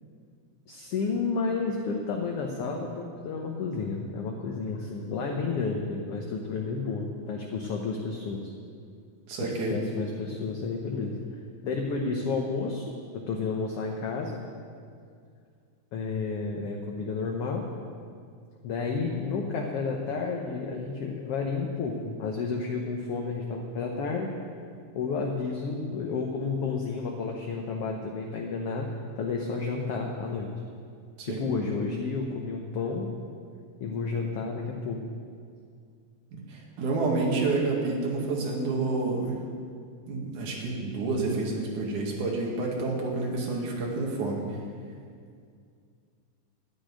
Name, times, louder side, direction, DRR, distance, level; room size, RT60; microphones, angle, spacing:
voice 1, 0.7-8.5 9.4-11.2 11.6-12.8 13.1-14.3 15.9-17.6 18.6-24.3 24.9-28.9 29.2-30.5 31.2-33.1 33.8-35.0, left 4 dB, 65° left, 1 dB, 1.5 m, -31 dB
voice 2, 9.3-9.8 31.2-31.4 36.3-39.4 40.1-44.4, right 3 dB, 65° right, -2 dB, 3.3 m, -29 dB
13.0 x 6.4 x 9.8 m, 2.2 s
omnidirectional pair, 3.8 m